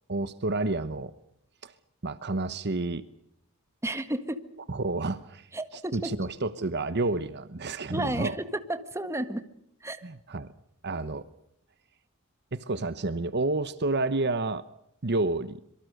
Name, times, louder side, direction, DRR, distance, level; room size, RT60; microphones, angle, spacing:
voice 1, 0.1-1.1 1.6-1.7 2.0-3.1 4.7-5.5 5.9-8.4 10.0-10.5 10.8-11.3 12.5-14.6 15.0-15.6, right 2 dB, 50° right, 14 dB, 1.1 m, -30 dB
voice 2, 3.8-4.4 5.5-6.1 7.9-9.4 9.8-10.0, right 1 dB, 15° right, 10 dB, 1.6 m, -32 dB
26.0 x 24.0 x 6.6 m, 0.71 s
head